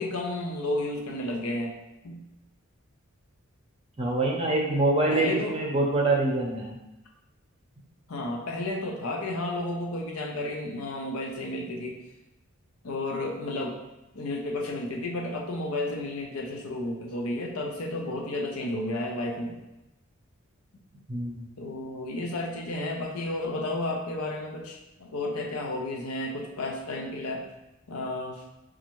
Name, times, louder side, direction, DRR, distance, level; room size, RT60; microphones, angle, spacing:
voice 1, 0.0-1.7 2.0-2.2 5.1-5.6 8.1-12.0 12.8-13.8 14.1-19.6 21.6-27.5 27.9-28.4, left 2 dB, 85° left, 0 dB, 0.7 m, -32 dB
voice 2, 4.0-6.7 21.1-21.4, right 2 dB, 25° right, -1 dB, 0.6 m, -25 dB
5.2 x 2.4 x 3.0 m, 0.96 s
head